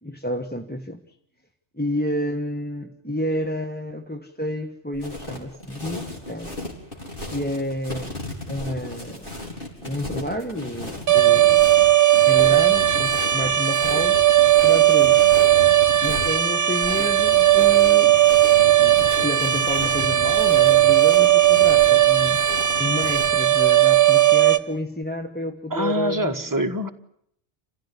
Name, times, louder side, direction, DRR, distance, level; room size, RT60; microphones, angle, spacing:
voice 1, 0.0-1.0 1.7-6.5 7.3-8.1 8.5-9.3 9.8-11.7 12.2-14.2 14.6-15.2 16.0-18.2 18.8-22.4 22.8-26.5, equal, 10° left, 4 dB, 1.4 m, -30 dB
sound 1, 4.9-23.4, left 1 dB, 50° left, 4.9 m, -35 dB
sound 2, 11.1-24.6, right 13 dB, 50° right, 1.4 m, -17 dB
voice 2, 25.7-26.9, equal, 15° right, 4 dB, 1.6 m, -25 dB
28.5 x 15.5 x 9.9 m, 0.72 s
omnidirectional pair, 1.2 m